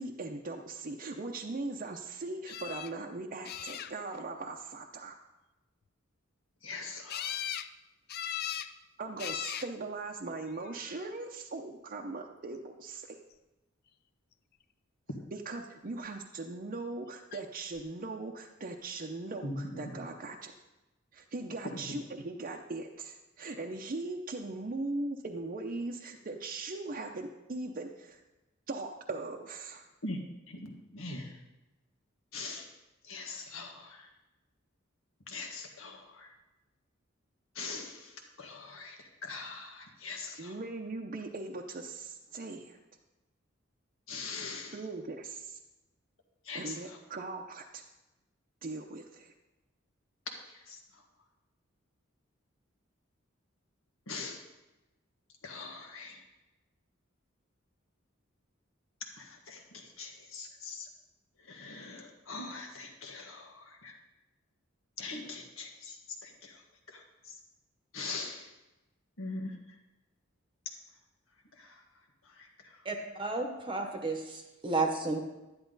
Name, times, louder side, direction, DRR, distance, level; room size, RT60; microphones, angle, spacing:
voice 1, 0.0-5.2 9.0-13.2 15.3-20.5 21.1-28.2 28.7-29.9 40.4-42.8 44.7-45.6 46.5-47.8 48.6-49.3, right 3 dB, 45° right, 1 dB, 0.7 m, -39 dB
sound 1, 2.5-2.9 3.4-4.2 7.1-7.7 8.1-8.7 9.2-9.7 10.6-11.1 17.3-17.4 17.8-17.9, left 10 dB, 50° left, 0.4 m, -38 dB
voice 2, 6.6-7.4 19.4-19.6 21.6-21.7 30.0-30.2 30.5-31.4 32.3-32.7 33.0-34.1 35.3-36.3 37.5-40.5 44.1-44.8 46.4-47.0 50.5-51.0 54.1-54.4 55.4-56.2 59.2-60.9 61.4-63.9 65.0-66.6 66.9-67.3 67.9-68.5 69.2-69.5 71.6-71.8 72.2-72.8, left 3 dB, 90° left, 2 dB, 1.7 m, -42 dB
voice 3, 72.8-75.2, right 3 dB, 25° right, 3 dB, 0.9 m, -32 dB
11.5 x 10.5 x 3.9 m, 1.0 s
head